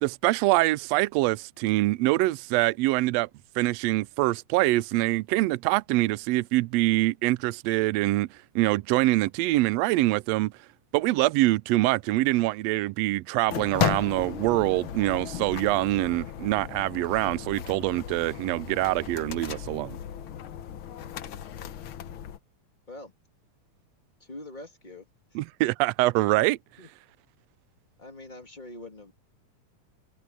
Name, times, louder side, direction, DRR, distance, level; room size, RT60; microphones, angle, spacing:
voice 1, 0.0-3.3 3.6-8.3 8.5-10.5 10.9-20.0 25.3-26.6, right 19 dB, 90° right, 1.4 m, -24 dB
sound 1, 13.5-22.4, left 11 dB, 75° left, 1.2 m, -35 dB
voice 2, 24.2-25.1 25.6-25.7 26.8-26.9 28.0-29.1, left 2 dB, 15° left, 2.7 m, -43 dB
omnidirectional pair, 3.6 m